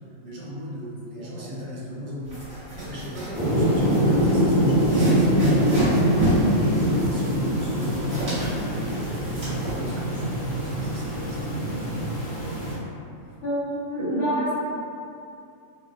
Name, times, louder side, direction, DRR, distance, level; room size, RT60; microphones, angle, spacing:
voice 1, 0.2-2.4 2.7-8.3 8.6-12.2 12.5-12.8, equal, 60° right, -7 dB, 0.8 m, -37 dB
voice 2, 1.2-1.5 13.4-14.5, right 1 dB, 60° left, -10 dB, 1.1 m, -27 dB
sound 1, 2.3-9.8, right 1 dB, 25° right, 1.1 m, -30 dB
sound 2, 3.3-12.7, equal, 40° left, 0.9 m, -23 dB
3.2 x 2.3 x 2.3 m, 2.6 s
omnidirectional pair, 1.5 m